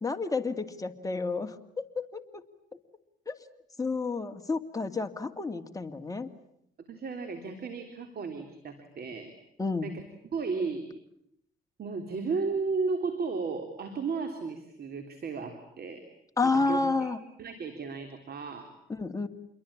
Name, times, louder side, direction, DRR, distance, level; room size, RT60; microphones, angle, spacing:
voice 1, 0.0-2.4 3.3-3.4 3.8-6.3 9.6-9.9 16.4-17.2 18.9-19.3, left 3 dB, 15° left, 5 dB, 2.3 m, -30 dB
voice 2, 6.9-9.3 9.8-10.0 10.3-10.9 11.8-16.1 16.4-17.1 17.4-18.7, right 4 dB, 50° right, 7 dB, 3.5 m, -34 dB
27.5 x 23.0 x 8.8 m, 0.75 s
cardioid pair, 90°, 20 cm